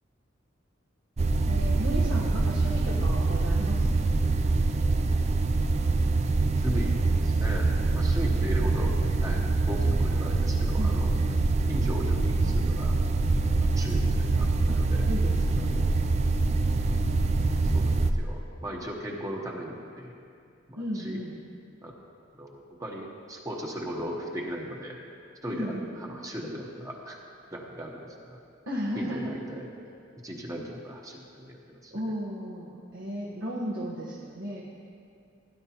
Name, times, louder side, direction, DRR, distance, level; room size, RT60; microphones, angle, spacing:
sound 1, 1.2-18.1, right 3 dB, 35° right, 0.4 m, -25 dB
voice 1, 1.4-3.9 10.8-11.1 14.7-16.2 20.8-21.4 25.5-25.9 28.7-29.3 31.9-34.6, equal, 80° right, -5 dB, 1.3 m, -35 dB
voice 2, 6.6-11.1 11.7-12.9 13.6-15.1 15.6-16.0 17.7-20.1 20.7-21.2 21.8-21.9 22.3-25.0 25.4-27.2 27.5-28.4 29.0-29.7 30.2-32.0, equal, 15° right, -1 dB, 1.0 m, -37 dB
16.5 x 9.9 x 2.9 m, 2.4 s
head